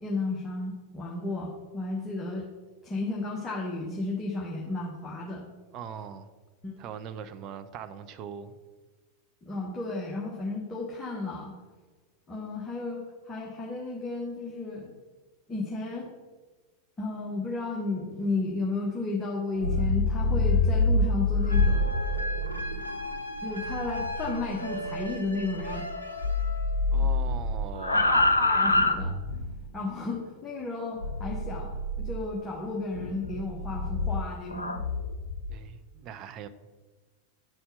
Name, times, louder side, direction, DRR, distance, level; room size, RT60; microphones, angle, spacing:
voice 1, 0.0-2.4 2.8-5.4 6.6-6.8 9.4-11.5 12.3-14.9 15.5-16.1 17.0-21.9 23.4-25.9 27.9-29.1 29.7-31.7 32.0-34.8, left 3 dB, 15° left, 1.2 m, -33 dB
voice 2, 5.7-6.3 6.8-8.5 26.9-28.2 35.5-36.5, right 8 dB, 35° right, 0.5 m, -41 dB
sound 1, 19.5-26.0 26.2-29.6 31.0-32.3 32.9-35.5, left 2 dB, 80° left, 0.5 m, -27 dB
sound 2, 21.5-27.0, left 1 dB, 90° right, 0.7 m, -37 dB
9.1 x 4.3 x 5.3 m
figure-of-eight pair, 90°, 0 cm